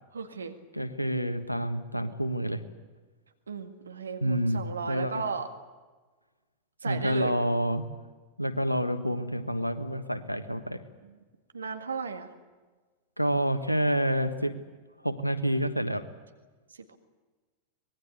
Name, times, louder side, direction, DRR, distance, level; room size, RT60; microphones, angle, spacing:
voice 1, 0.1-0.6 3.5-5.5 6.8-7.3 11.0-11.2 11.5-12.3 16.7-17.0, right 5 dB, 75° right, 7 dB, 1.9 m, -35 dB
voice 2, 0.7-2.6 4.2-5.2 6.8-7.9 8.4-10.8 13.2-14.6 15.0-16.0, equal, 90° left, 11 dB, 1.4 m, -28 dB
25.0 x 20.5 x 8.3 m, 1.3 s
figure-of-eight pair, 90°, 0 cm